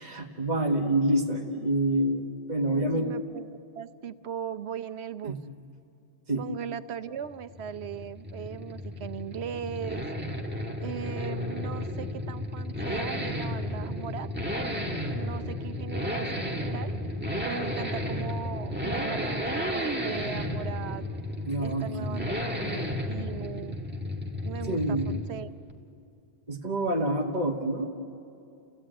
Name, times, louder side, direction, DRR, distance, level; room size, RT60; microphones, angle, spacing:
voice 1, 0.0-3.1 5.2-5.4 6.3-6.4 21.5-22.4 24.7-25.1 26.5-27.9, right 1 dB, 40° right, -1 dB, 1.6 m, -27 dB
voice 2, 2.7-5.4 6.4-10.1 10.8-14.3 15.1-16.9 17.4-21.0 21.6-22.3 22.6-23.8 24.4-25.5, right 8 dB, 85° right, 12 dB, 1.0 m, -38 dB
Accelerating revving vroom, 7.3-25.4 25.7-25.8, left 1 dB, 10° right, 1.8 m, -33 dB
29.5 x 16.5 x 8.9 m, 2.7 s
omnidirectional pair, 1.1 m